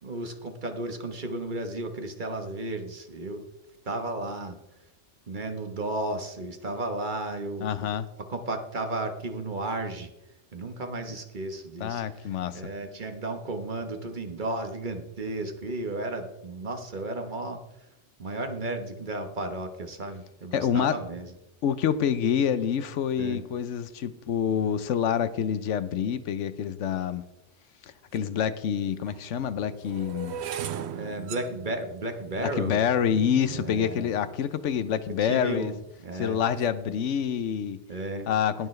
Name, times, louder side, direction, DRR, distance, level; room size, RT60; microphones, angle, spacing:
voice 1, 0.0-3.4 3.8-4.6 5.3-7.7 8.3-10.1 10.5-12.3 12.5-17.6 18.2-21.3 23.2-23.4 30.9-32.8 33.5-34.1 35.2-35.8 36.0-36.4 37.9-38.3, right 2 dB, 45° right, 6 dB, 1.2 m, -33 dB
voice 2, 7.6-8.1 11.8-12.7 20.5-21.0 21.6-27.2 27.8-30.4 32.4-35.7 36.1-37.8 38.3-38.7, left 8 dB, 80° left, 14 dB, 1.0 m, -27 dB
sound 1, 28.1-28.2 29.0-35.1 35.8-36.2 36.4-36.8, right 9 dB, 70° right, 0.8 m, -39 dB
19.5 x 6.8 x 3.2 m, 0.91 s
omnidirectional pair, 1.2 m